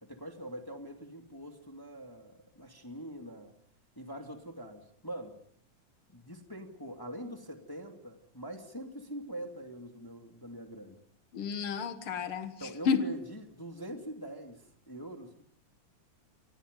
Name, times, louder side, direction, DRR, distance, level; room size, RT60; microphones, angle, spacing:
voice 1, 0.0-3.5 4.0-5.4 6.1-11.0 12.6-15.4, right 1 dB, 10° left, 2.0 m, -44 dB
voice 2, 11.3-13.0, left 6 dB, 55° left, 2.2 m, -31 dB
28.5 x 23.5 x 5.3 m
omnidirectional pair, 3.4 m